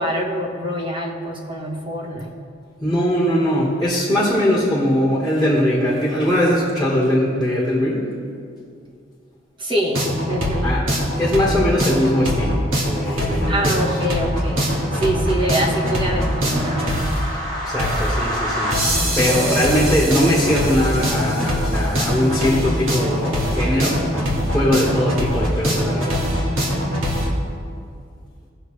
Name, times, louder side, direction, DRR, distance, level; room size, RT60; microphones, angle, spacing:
voice 1, 0.0-2.3 9.6-10.7 13.5-17.1 19.3-19.6, right 1 dB, 25° right, -1 dB, 1.3 m, -25 dB
voice 2, 2.8-8.1 10.6-10.8 11.1-13.8 17.6-18.7 19.1-26.2, equal, ahead, -6 dB, 1.4 m, -20 dB
sound 1, 9.9-27.3, equal, 85° right, 2.2 m, -22 dB
18.0 x 6.5 x 3.2 m, 2.3 s
head